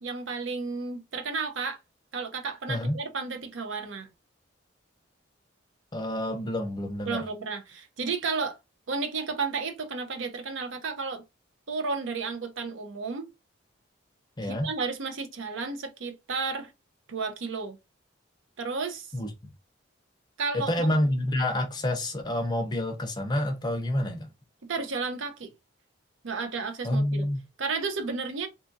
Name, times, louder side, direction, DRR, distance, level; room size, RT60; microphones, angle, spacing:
voice 1, 0.0-1.8 2.1-4.1 7.1-8.6 8.9-11.2 11.7-13.3 14.5-16.7 17.1-17.8 18.6-19.1 20.4-21.0 24.7-25.5 26.2-27.3 27.6-28.5, right 4 dB, 80° right, 0.6 m, -32 dB
voice 2, 2.7-3.0 5.9-7.2 14.4-14.7 19.1-19.3 20.5-24.3 26.8-27.4, left 1 dB, 20° left, 0.5 m, -28 dB
2.7 x 2.6 x 2.5 m
head